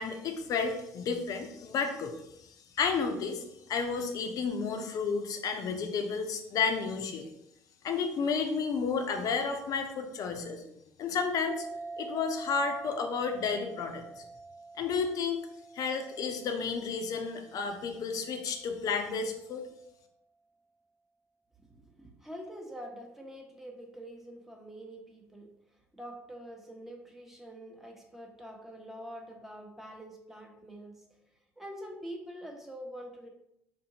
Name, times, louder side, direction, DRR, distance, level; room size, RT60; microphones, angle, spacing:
voice 1, 0.0-2.1 2.8-3.4 3.7-7.3 7.8-10.6 11.0-11.7 12.0-14.2 14.8-15.4 15.7-19.6, left 5 dB, 50° left, 6 dB, 0.6 m, -31 dB
sound 1, 11.5-18.5, right 3 dB, 20° right, 0.5 m, -46 dB
voice 2, 21.7-25.5 25.9-31.0 31.6-33.3, equal, 5° right, 1 dB, 0.9 m, -45 dB
3.6 x 2.7 x 2.8 m, 0.79 s
hypercardioid pair, 60°, 8 cm